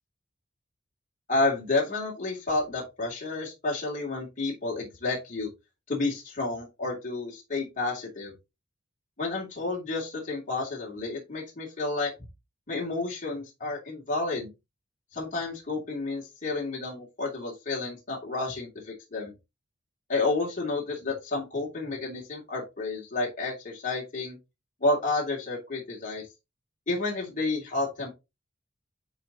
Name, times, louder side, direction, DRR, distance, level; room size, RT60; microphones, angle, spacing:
voice 1, 1.3-5.5 5.9-8.3 9.2-12.1 12.7-14.5 15.1-19.3 20.1-24.4 24.8-26.2 26.9-28.1, left 3 dB, 45° left, -3 dB, 2.9 m, -30 dB
9.9 x 4.2 x 3.0 m, 0.24 s
head